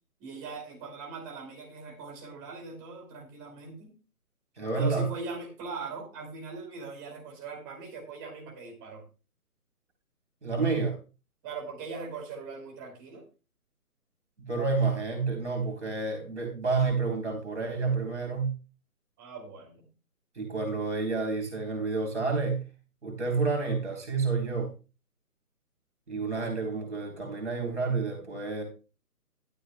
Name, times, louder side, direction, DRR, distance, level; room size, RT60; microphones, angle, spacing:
voice 1, 0.2-3.9 4.7-9.0 11.4-13.2 19.2-19.8, right 4 dB, 15° right, -1 dB, 2.6 m, -40 dB
voice 2, 4.6-5.1 10.4-11.0 14.4-18.5 20.4-22.6 23.0-24.7 26.1-28.6, right 4 dB, 45° right, 2 dB, 3.8 m, -29 dB
13.0 x 12.5 x 2.3 m, 0.32 s
figure-of-eight pair, 150°, 47 cm